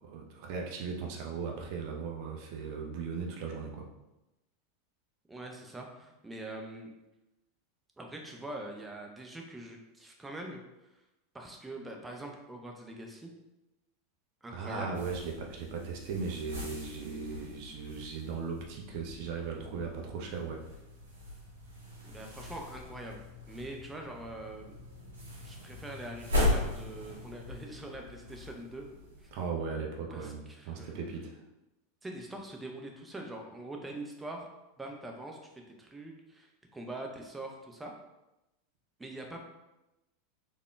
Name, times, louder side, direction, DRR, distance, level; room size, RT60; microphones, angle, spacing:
voice 1, 0.0-3.9 14.5-20.6 29.3-31.3, right 5 dB, 55° right, 1 dB, 0.6 m, -37 dB
voice 2, 5.3-6.9 8.0-10.6 11.3-13.3 14.4-15.0 22.0-24.7 25.4-28.9 29.2-29.3 30.1-31.0 32.0-34.5 34.8-37.9 39.0-39.4, right 1 dB, 10° right, 1 dB, 0.6 m, -43 dB
sound 1, 14.9-29.4, left 2 dB, 80° right, 1.5 m, -38 dB
3.6 x 3.5 x 2.2 m, 0.96 s
hypercardioid pair, 90°, 0 cm